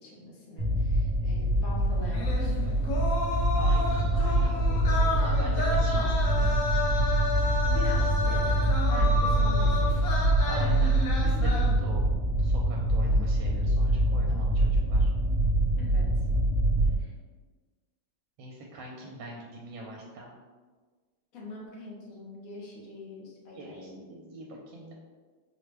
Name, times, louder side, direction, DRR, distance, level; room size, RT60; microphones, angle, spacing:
voice 1, 0.0-3.0 7.6-10.2 15.8-16.1 17.0-17.1 21.3-24.0, left 1 dB, 60° left, -3 dB, 1.0 m, -43 dB
sound 1, 0.6-17.0, right 1 dB, 65° right, 1.4 m, -25 dB
sound 2, 2.1-11.7, left 2 dB, 75° left, 0.7 m, -32 dB
voice 2, 3.6-6.9 10.4-12.0 12.3-15.1 18.4-20.4 23.5-24.9, right 1 dB, 80° right, -2 dB, 1.3 m, -42 dB
4.9 x 2.2 x 3.2 m, 1.4 s
omnidirectional pair, 2.1 m